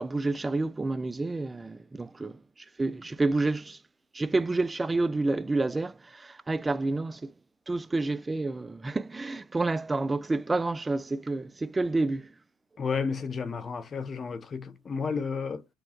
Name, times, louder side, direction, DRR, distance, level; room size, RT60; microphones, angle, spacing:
voice 1, 0.0-2.4 2.8-3.8 4.1-7.3 7.7-12.3, right 2 dB, 15° right, 0.3 m, -29 dB
voice 2, 12.8-15.6, left 5 dB, 30° left, 0.8 m, -32 dB
4.9 x 2.2 x 4.3 m
supercardioid pair, 95°, 0 cm